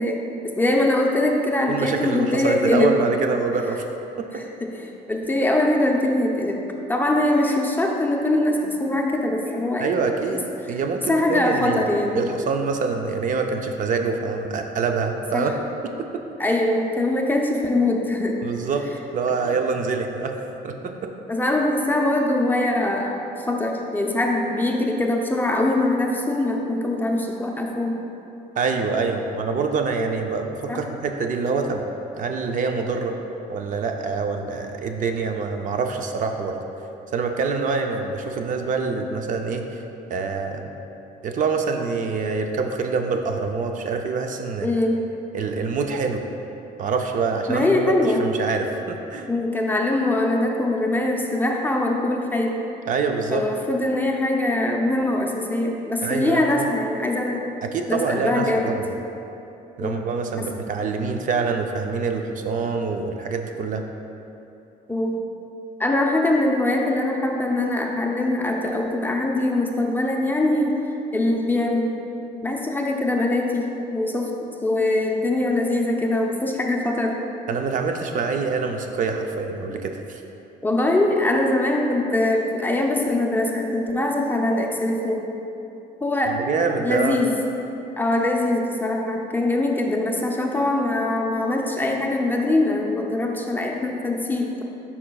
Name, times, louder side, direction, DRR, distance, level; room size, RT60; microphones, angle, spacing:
voice 1, 0.0-3.0 4.3-6.6 6.9-9.9 11.1-12.2 15.3-15.5 16.4-18.4 21.3-23.1 23.5-28.0 30.7-30.8 44.6-45.0 47.5-48.2 49.3-52.6 53.3-57.5 57.9-58.7 59.8-60.0 60.4-60.5 64.9-65.2 65.8-70.8 71.1-71.9 72.4-74.3 74.6-77.2 78.2-78.3 80.6-85.3 86.0-86.4 86.8-87.3 88.0-94.6, left 2 dB, 10° left, 0 dB, 0.6 m, -22 dB
voice 2, 1.7-3.9 4.2-4.4 9.8-11.9 12.2-15.5 15.8-16.2 18.4-18.9 19.1-20.4 20.6-21.1 28.6-31.8 32.2-33.2 33.5-36.6 37.1-39.8 40.1-40.7 41.2-44.7 45.3-46.2 46.8-49.3 52.9-53.5 56.0-56.7 57.6-58.9 59.8-63.8 77.5-80.2 86.3-87.2, right 4 dB, 50° right, 4 dB, 0.5 m, -25 dB
8.5 x 5.7 x 2.3 m, 2.9 s
cardioid pair, 110°, 17 cm